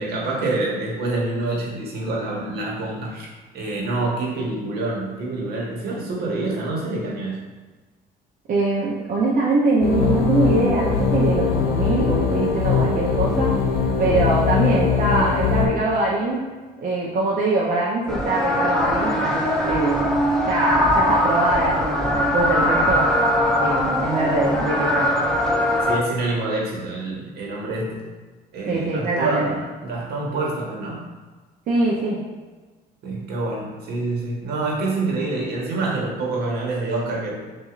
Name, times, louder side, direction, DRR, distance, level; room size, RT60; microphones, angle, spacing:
voice 1, 0.0-3.3 3.5-7.4 25.8-28.0 28.5-31.1 33.0-37.3, right 2 dB, 70° right, -3 dB, 1.2 m, -26 dB
voice 2, 8.5-13.6 14.0-16.4 16.8-20.1 20.4-23.2 23.6-25.2 28.7-29.5 31.7-32.2, right 2 dB, 50° right, -5 dB, 0.7 m, -23 dB
sound 1, 9.8-15.7, left 5 dB, 75° left, 0.8 m, -21 dB
sound 2, 18.1-26.0, left 1 dB, 5° left, 0.6 m, -21 dB
6.0 x 2.6 x 2.5 m, 1.3 s
cardioid pair, 110°, 17 cm